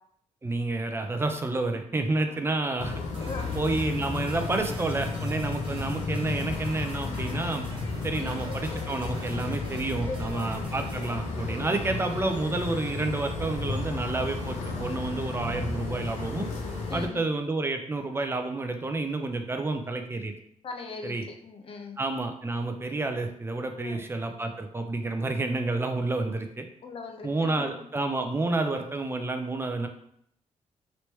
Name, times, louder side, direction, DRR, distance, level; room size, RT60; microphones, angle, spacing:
voice 1, 0.4-3.0 3.5-7.7 8.0-16.5 16.9-20.3 21.0-21.3 22.0-26.7 27.2-29.9, right 2 dB, 20° right, 5 dB, 0.4 m, -29 dB
sound 1, 2.8-17.1, left 3 dB, 80° left, 0.8 m, -33 dB
sound 2, 3.1-11.1, right 1 dB, 45° right, 1.0 m, -44 dB
voice 2, 3.2-3.5 8.2-8.5 10.1-10.5 11.7-11.9 16.9-17.3 20.6-21.2 21.4-22.0 23.8-24.0 26.8-27.7, left 4 dB, 50° left, 4 dB, 0.6 m, -39 dB
3.1 x 3.0 x 3.0 m, 0.70 s
cardioid pair, 100°, 12 cm